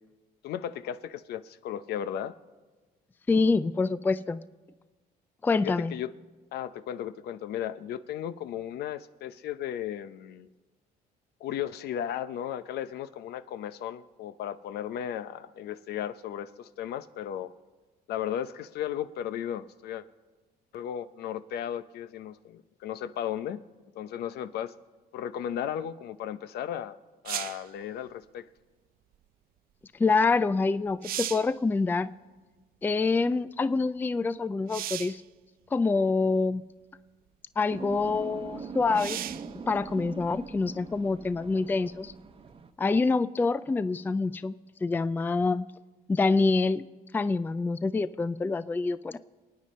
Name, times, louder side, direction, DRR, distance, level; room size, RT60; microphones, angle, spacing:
voice 1, 0.4-2.3 5.6-6.1 6.5-10.5 11.4-17.5 18.1-20.0 20.7-23.6 23.9-24.7 25.1-27.0 27.2-28.5, left 10 dB, 70° left, 13 dB, 0.7 m, -35 dB
voice 2, 3.3-4.4 5.4-5.9 30.0-32.1 32.8-35.2 35.7-36.6 37.6-39.2 39.7-42.1 42.8-44.5 44.8-45.7 46.1-46.9 47.1-49.2, left 3 dB, 10° left, 15 dB, 0.4 m, -26 dB
sound 1, 27.2-27.7 30.4-30.5 30.9-31.6 34.7-35.2 36.2-36.3 38.9-39.5 43.1-43.2, right 12 dB, 60° right, 0.5 m, -35 dB
sound 2, 37.7-42.7, right 5 dB, 30° right, 0.9 m, -42 dB
27.0 x 9.3 x 4.3 m, 1.3 s
cardioid pair, 110°, 17 cm